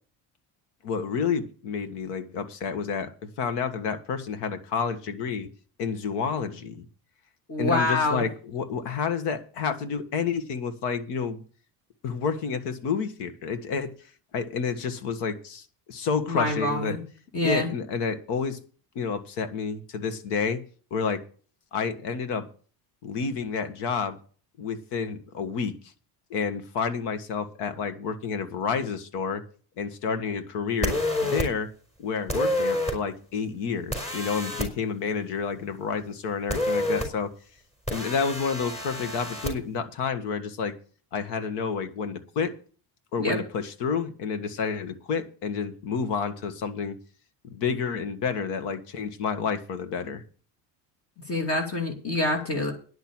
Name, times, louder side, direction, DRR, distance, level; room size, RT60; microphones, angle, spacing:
voice 1, 0.8-5.5 5.8-6.9 7.6-11.4 12.0-13.9 14.3-17.0 17.4-18.6 19.0-20.6 20.9-21.2 21.7-22.5 23.0-24.2 24.6-25.7 26.3-29.4 29.8-31.7 32.0-37.3 37.9-40.7 41.1-42.5 43.1-47.0 47.4-50.2, left 5 dB, 80° left, 10 dB, 1.7 m, -29 dB
voice 2, 7.5-8.2 16.3-17.0 17.3-17.7 43.2-43.4 51.3-52.7, left 2 dB, 35° left, 2 dB, 2.6 m, -26 dB
sound 1, 30.8-31.5 32.3-32.9 33.9-34.7 36.5-37.1 37.9-39.5, left 1 dB, 15° left, 4.6 m, -28 dB
10.5 x 6.1 x 8.9 m, 0.41 s
cardioid pair, 135°, 41 cm